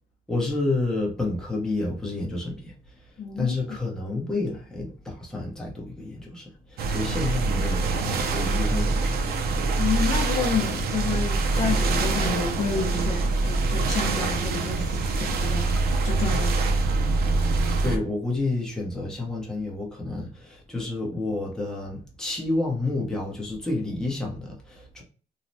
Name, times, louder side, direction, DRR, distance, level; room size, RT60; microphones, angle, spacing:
voice 1, 0.3-3.1 3.4-9.2 17.8-25.0, left 2 dB, 5° left, 0.7 m, -30 dB
voice 2, 3.2-3.8 9.8-16.8, left 5 dB, 45° left, 0.6 m, -30 dB
sound 1, 6.8-18.0, right 3 dB, 75° right, 0.5 m, -24 dB
3.1 x 2.1 x 2.6 m
cardioid pair, 150°, 16 cm